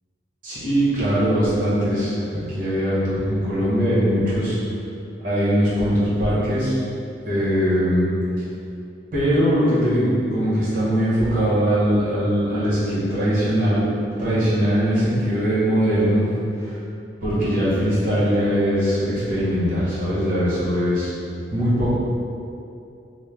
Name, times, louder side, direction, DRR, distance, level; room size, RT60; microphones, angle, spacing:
voice 1, 0.4-4.6 5.2-6.8 7.3-8.1 9.1-13.9 14.2-16.2 16.6-16.8 17.2-21.1 21.5-21.9, equal, 50° right, -10 dB, 1.1 m, -21 dB
3.2 x 2.1 x 3.4 m, 2.6 s
head